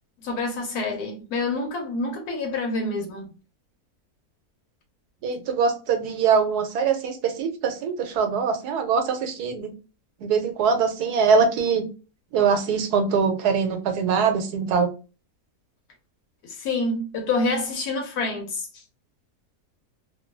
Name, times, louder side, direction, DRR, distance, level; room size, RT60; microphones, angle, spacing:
voice 1, 0.2-3.3 16.4-18.7, left 3 dB, 85° left, 1.2 m, -27 dB
voice 2, 5.2-9.7 10.2-11.9 12.3-14.9, right 5 dB, 90° right, 1.3 m, -23 dB
2.9 x 2.3 x 2.4 m
omnidirectional pair, 1.6 m